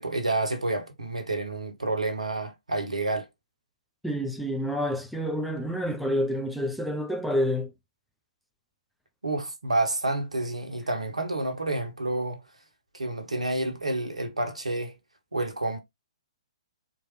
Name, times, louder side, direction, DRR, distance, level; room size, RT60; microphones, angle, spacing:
voice 1, 0.0-3.3 9.2-12.4 12.9-15.0 15.3-15.8, right 2 dB, 75° right, 1.2 m, -29 dB
voice 2, 4.0-7.7, equal, ahead, 0.5 m, -28 dB
4.1 x 3.2 x 3.1 m
figure-of-eight pair, 125°, 4 cm